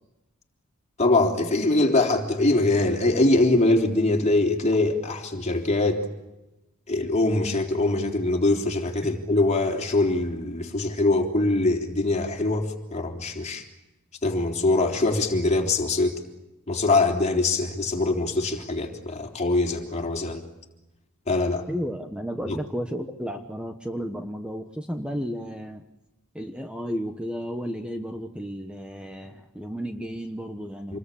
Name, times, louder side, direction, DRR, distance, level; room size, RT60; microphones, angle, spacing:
voice 1, 1.0-6.0 6.9-13.6 14.2-16.2 16.7-20.4 21.3-21.6 22.5-22.6 30.9-31.0, left 2 dB, 30° left, 3 dB, 3.6 m, -23 dB
voice 2, 21.7-25.8 26.3-31.0, equal, 5° right, 5 dB, 1.2 m, -33 dB
27.5 x 21.5 x 8.6 m, 0.99 s
head